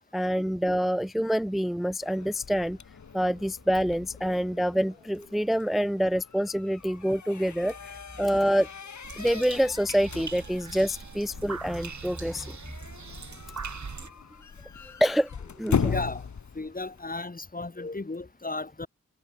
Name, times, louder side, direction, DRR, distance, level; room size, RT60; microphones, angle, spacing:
voice 1, 0.1-2.8 3.1-8.7 9.2-12.6 15.0-15.3 15.6-15.9, equal, ahead, 0.6 m, -26 dB
sound 1, 2.0-17.1, left 6 dB, 70° left, 0.9 m, -38 dB
sound 2, 9.0-14.1, right 5 dB, 70° right, 1.7 m, -41 dB
voice 2, 15.8-16.2 16.5-18.9, left 3 dB, 30° left, 1.1 m, -34 dB
wide cardioid pair, 70°, 30 cm